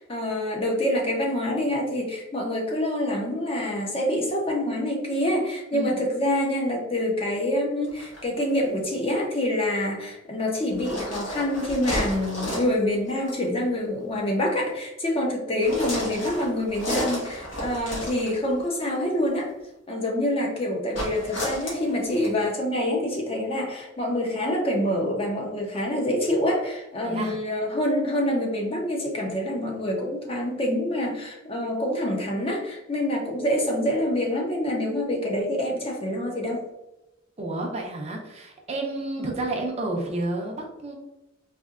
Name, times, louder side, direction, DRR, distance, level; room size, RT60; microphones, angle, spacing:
voice 1, 0.0-19.5 19.9-36.6 39.2-39.3, left 1 dB, 30° left, 0 dB, 0.7 m, -26 dB
sound 1, 7.8-8.2 10.7-12.8 13.2-13.4 15.6-18.7 20.9-22.4, equal, 75° left, 1.5 m, -31 dB
voice 2, 27.0-27.4 37.4-40.9, right 2 dB, 30° right, 0 dB, 0.6 m, -30 dB
4.3 x 2.7 x 2.4 m, 0.93 s
head